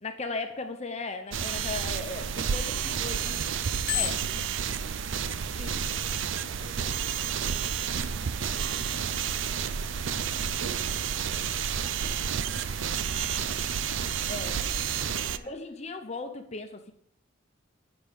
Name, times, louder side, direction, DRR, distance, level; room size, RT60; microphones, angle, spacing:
voice 1, 0.0-3.4 3.9-4.1 5.6-5.7 6.6-6.8 14.3-14.6 15.5-16.9, left 3 dB, 30° left, 6 dB, 0.7 m, -37 dB
Bicycle bell, 1.3-3.2 3.6-5.2 5.9-6.1, left 14 dB, 50° left, 0.3 m, -36 dB
sound 1, 1.3-15.4, right 7 dB, 65° right, 0.5 m, -30 dB
voice 2, 2.8-5.3 5.6-10.4 15.0-15.6, right 1 dB, 45° right, -4 dB, 3.9 m, -55 dB
sound 2, 5.3-11.7, left 1 dB, 15° left, 1.4 m, -52 dB
9.5 x 6.0 x 5.2 m, 0.73 s
head